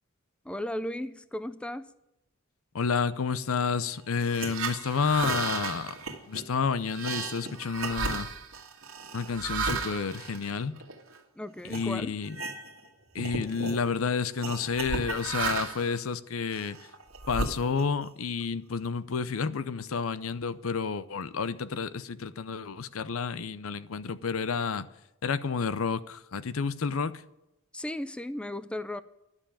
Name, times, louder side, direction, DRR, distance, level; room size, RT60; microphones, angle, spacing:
voice 1, 0.4-1.9 11.4-12.2 27.7-29.0, left 1 dB, 5° left, 0.4 m, -35 dB
voice 2, 2.7-6.0 6.3-8.3 9.1-10.8 11.6-12.4 13.1-16.8 17.3-24.9 25.2-27.2, left 5 dB, 85° left, 0.6 m, -30 dB
sound 1, 4.1-11.2 11.7-11.9 12.2-12.9 13.1-13.8 14.4-15.9 16.5-18.1, right 4 dB, 85° right, 1.7 m, -34 dB
11.5 x 7.2 x 8.8 m
head